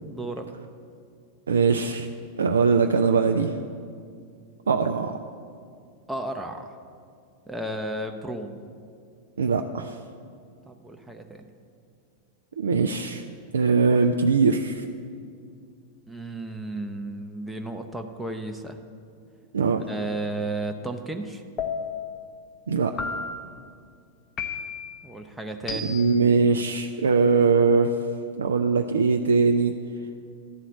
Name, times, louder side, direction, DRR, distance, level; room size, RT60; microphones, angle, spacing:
voice 1, 0.1-0.5 6.1-6.7 7.5-8.6 10.7-11.5 16.1-18.8 19.9-21.4 25.0-26.0, right 2 dB, 5° right, 3 dB, 0.6 m, -33 dB
voice 2, 1.5-2.1 2.4-3.6 4.7-5.2 9.4-10.0 12.6-13.2 13.5-14.9 19.5-19.9 22.7-22.9 25.7-27.9 28.4-29.7, right 5 dB, 70° right, 5 dB, 0.3 m, -21 dB
sound 1, 21.6-22.2 23.0-23.6 24.4-25.0 25.7-26.3, left 5 dB, 30° left, 0.8 m, -32 dB
11.5 x 4.1 x 7.7 m, 2.2 s
figure-of-eight pair, 90°, 0 cm